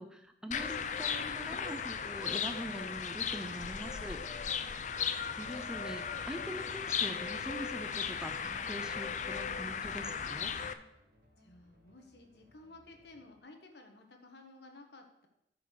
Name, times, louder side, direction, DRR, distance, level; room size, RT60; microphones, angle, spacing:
voice 1, 0.0-4.2 5.4-10.5, equal, 5° right, 6 dB, 0.7 m, -43 dB
sound 1, 0.5-10.7, left 7 dB, 45° left, 0.5 m, -36 dB
sound 2, 1.0-13.4, equal, 60° right, 2.0 m, -66 dB
voice 2, 11.4-15.3, left 2 dB, 70° left, 4 dB, 1.5 m, -55 dB
10.5 x 4.9 x 6.5 m, 0.81 s
head